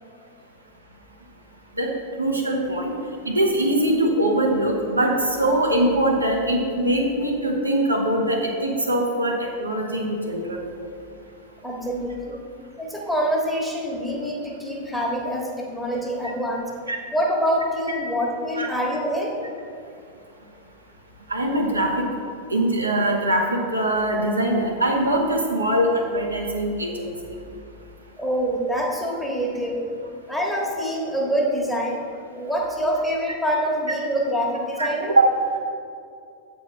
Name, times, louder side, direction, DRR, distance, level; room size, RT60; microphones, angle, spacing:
voice 1, 2.2-2.9 3.2-10.6 16.9-17.0 17.9-18.0 18.6-18.7 21.3-22.0 22.5-27.3 34.8-34.9 35.2-35.3, right 1 dB, 80° right, 0 dB, 0.9 m, -22 dB
voice 2, 11.6-12.4 12.8-16.7 17.1-19.3 28.2-29.8 30.3-32.0 32.3-35.2, equal, ahead, -2 dB, 1.3 m, -25 dB
7.9 x 4.4 x 4.6 m, 2.4 s
figure-of-eight pair, 90°, 0 cm